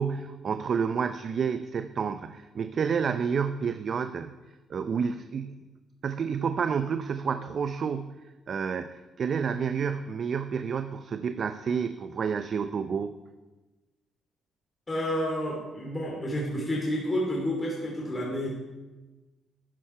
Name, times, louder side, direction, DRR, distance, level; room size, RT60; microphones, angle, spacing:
voice 1, 0.0-4.3 4.7-5.7 6.0-13.1, right 6 dB, 50° right, 11 dB, 0.5 m, -30 dB
voice 2, 14.9-18.5, equal, 25° left, -4 dB, 3.0 m, -30 dB
12.0 x 9.4 x 4.5 m, 1.2 s
cardioid pair, 90°, 0 cm